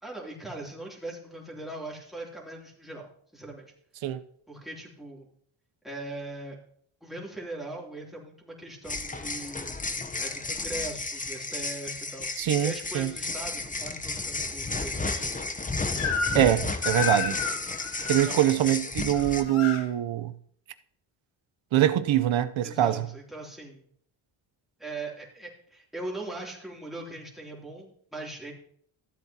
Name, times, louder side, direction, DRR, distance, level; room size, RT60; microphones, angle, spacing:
voice 1, 0.0-3.1 3.3-3.7 4.5-5.3 5.8-6.6 7.0-9.7 10.2-15.4 15.9-16.2 18.2-18.6 22.6-23.8 24.8-28.5, right 2 dB, ahead, 3.0 m, -40 dB
sound 1, 8.8-19.4, left 3 dB, 15° left, 0.8 m, -33 dB
voice 2, 12.4-13.1 16.3-17.4 18.1-20.3 21.7-23.1, right 12 dB, 70° right, 0.8 m, -24 dB
Crying sobbing / Screech, 16.0-16.5 16.8-18.3 19.1-19.8, left 6 dB, 90° left, 1.6 m, -31 dB
14.0 x 8.0 x 2.9 m
cardioid pair, 85°, 49 cm